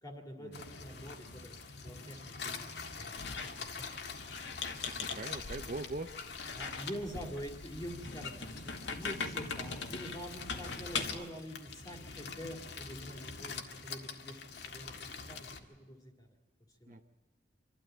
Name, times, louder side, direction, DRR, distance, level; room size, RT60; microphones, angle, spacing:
voice 1, 0.0-3.9 4.3-4.4 6.5-14.4 14.7-16.3 16.8-17.0, equal, 20° left, 3 dB, 2.2 m, -46 dB
sound 1, 0.5-15.6, left 5 dB, 65° left, 1.8 m, -45 dB
Squeak, 3.2-11.3, left 5 dB, 85° left, 2.0 m, -41 dB
voice 2, 5.0-6.1 7.1-7.3 11.1-11.3 16.9-17.0, right 2 dB, 45° right, 8 dB, 0.7 m, -42 dB
26.5 x 12.5 x 8.8 m, 1.3 s
head